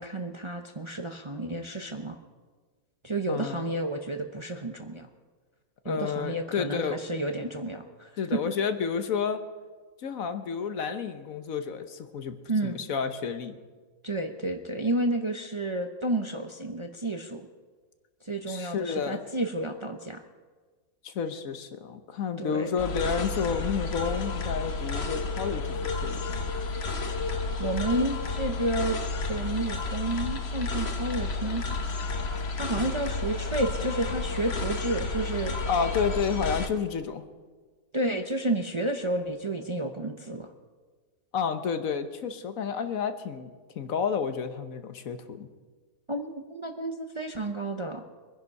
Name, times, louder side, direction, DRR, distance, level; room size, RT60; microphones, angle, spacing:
voice 1, 0.0-2.2 3.0-5.1 5.8-8.4 12.5-12.8 14.0-17.4 18.2-20.2 22.4-22.7 27.6-29.0 29.3-31.8 32.5-35.6 37.9-40.5 46.1-48.0, right 1 dB, 25° right, 5 dB, 0.7 m, -31 dB
voice 2, 3.3-3.7 5.8-7.0 8.2-9.4 10.0-12.4 12.6-13.6 18.5-19.2 21.0-26.2 32.8-32.9 35.7-37.2 41.3-45.5, left 6 dB, 70° left, 9 dB, 1.4 m, -30 dB
sound 1, 22.8-36.7, left 3 dB, 50° left, 1.3 m, -31 dB
23.0 x 10.5 x 5.4 m, 1.4 s
omnidirectional pair, 1.5 m